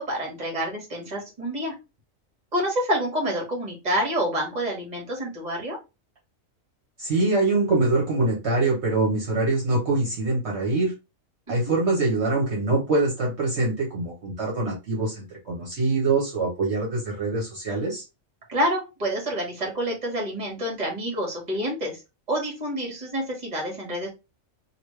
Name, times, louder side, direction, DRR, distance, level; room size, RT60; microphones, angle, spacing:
voice 1, 0.0-1.7 2.5-5.8 11.5-11.7 18.5-22.0 22.3-24.1, equal, 30° right, -1 dB, 1.5 m, -28 dB
voice 2, 7.0-10.9 11.5-18.0, right 2 dB, 55° right, -3 dB, 1.2 m, -24 dB
3.1 x 2.7 x 3.2 m, 0.26 s
omnidirectional pair, 1.4 m